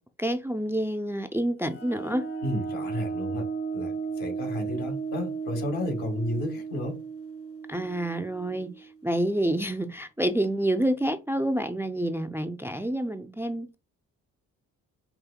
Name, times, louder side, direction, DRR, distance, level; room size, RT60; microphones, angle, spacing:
voice 1, 0.2-2.3 7.7-13.8, right 1 dB, 5° right, 0.4 m, -28 dB
sound 1, 1.7-9.1, right 5 dB, 40° left, 0.9 m, -35 dB
voice 2, 2.4-3.5 3.7-7.0, left 1 dB, 75° left, 1.7 m, -32 dB
5.6 x 2.7 x 2.2 m
supercardioid pair, 50°, 36 cm